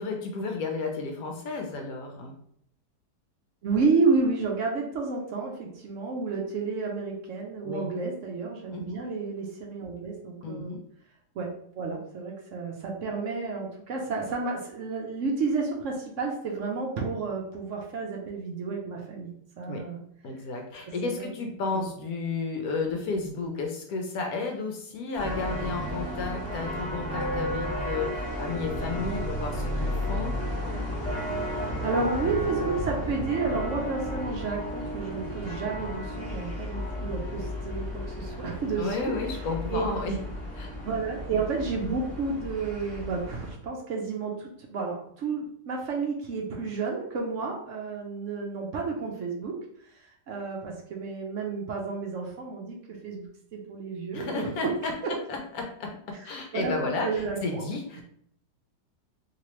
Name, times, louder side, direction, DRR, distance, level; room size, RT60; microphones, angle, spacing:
voice 1, 0.0-2.4 7.6-7.9 8.7-9.0 10.4-10.8 19.7-19.8 20.2-30.3 38.8-40.2 40.6-40.7 54.1-54.9 55.3-57.1 57.4-58.0, left 3 dB, 70° left, 2 dB, 0.9 m, -32 dB
voice 2, 3.6-10.8 11.3-20.0 20.9-21.3 21.7-21.9 31.5-39.2 39.7-40.2 40.8-49.6 49.9-54.7 55.0-55.1 56.2-57.6, right 4 dB, 65° right, 0 dB, 0.8 m, -31 dB
sound 1, 25.2-43.5, equal, 10° right, 1.3 m, -33 dB
3.0 x 2.8 x 3.0 m, 0.67 s
omnidirectional pair, 1.9 m